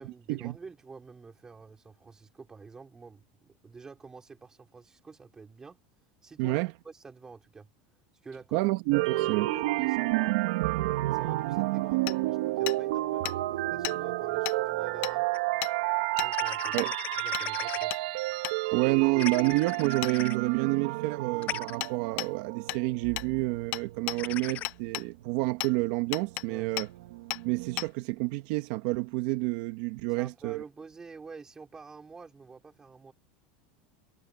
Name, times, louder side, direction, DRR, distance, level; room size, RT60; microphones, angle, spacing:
voice 1, 0.0-5.8 6.2-8.6 9.1-10.4 11.1-15.3 16.2-16.9 17.2-17.9 26.5-26.7 30.2-33.1, right 4 dB, 15° right, 3.5 m, -48 dB
voice 2, 6.4-6.7 8.5-9.5 16.7-16.9 18.7-26.9 27.4-30.6, right 21 dB, 60° right, 1.8 m, -29 dB
sound 1, 8.9-24.7 25.1-27.9, right 18 dB, 75° right, 1.5 m, -31 dB
Hammer, 12.1-12.2 12.7-12.8 13.2-13.4 13.8-14.0 14.4-14.6 15.0-15.1 15.6-15.7 16.2-16.3 16.8-16.9 17.3-17.5 17.9-18.0 18.4-18.6 20.0-20.1 21.8-21.9 22.2-22.3 22.7-22.8 23.2-23.3 23.7-24.2 24.6-25.1 25.6-25.7 26.1-26.5 26.8-26.9 27.3-27.4 27.8-27.9, left 20 dB, 50° left, 0.9 m, -34 dB
sound 2, 15.3-15.4 16.3-17.9 19.2-20.4 21.4-21.8 24.2-24.7, left 13 dB, 35° left, 0.3 m, -37 dB
supercardioid pair, 145°, 4 cm